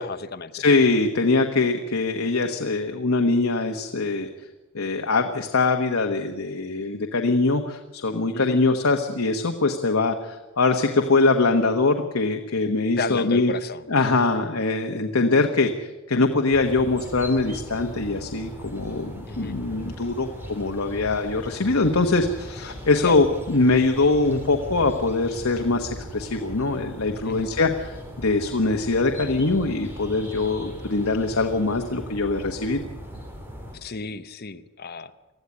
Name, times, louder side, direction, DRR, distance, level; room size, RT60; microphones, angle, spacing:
voice 1, 0.0-0.6 8.3-8.6 13.0-13.9 19.3-19.6 23.0-23.2 27.2-27.5 30.4-30.6 33.7-35.1, left 4 dB, 50° left, 10 dB, 0.9 m, -33 dB
voice 2, 0.5-4.5 4.7-13.5 13.9-15.7 16.1-32.8, left 3 dB, 85° left, 4 dB, 1.3 m, -22 dB
sound 1, 16.5-33.8, equal, 10° right, 3.4 m, -39 dB
20.5 x 13.5 x 9.7 m, 1.2 s
head